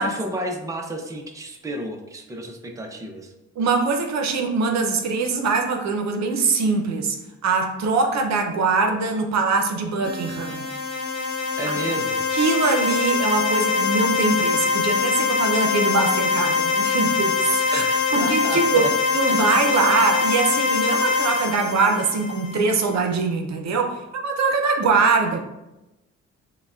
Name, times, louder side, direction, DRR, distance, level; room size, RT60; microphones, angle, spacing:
voice 1, 0.0-3.3 11.6-12.2 17.7-18.9 19.3-19.5, right 1 dB, 10° right, 2 dB, 0.5 m, -31 dB
voice 2, 3.6-7.2 7.4-10.7 12.3-17.8 18.1-25.4, right 4 dB, 65° right, 3 dB, 0.6 m, -22 dB
sound 1, 10.0-22.8, left 5 dB, 55° left, 1.0 m, -23 dB
6.5 x 2.2 x 2.4 m, 0.98 s
cardioid pair, 90°, 30 cm